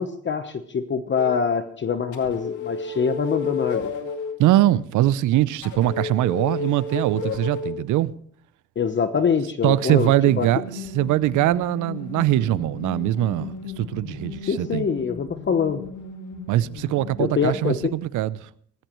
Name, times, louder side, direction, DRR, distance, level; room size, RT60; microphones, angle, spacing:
voice 1, 0.0-3.9 8.8-10.5 14.5-15.8 17.2-17.9, left 6 dB, 40° left, 1.0 m, -24 dB
sound 1, 1.1-1.3 2.1-4.3 5.6-7.8 10.1-17.9, left 5 dB, 75° left, 2.3 m, -33 dB
voice 2, 4.4-8.1 9.6-14.9 16.5-18.5, right 14 dB, 80° right, 0.6 m, -22 dB
18.5 x 14.5 x 3.1 m
cardioid pair, 90°, 30 cm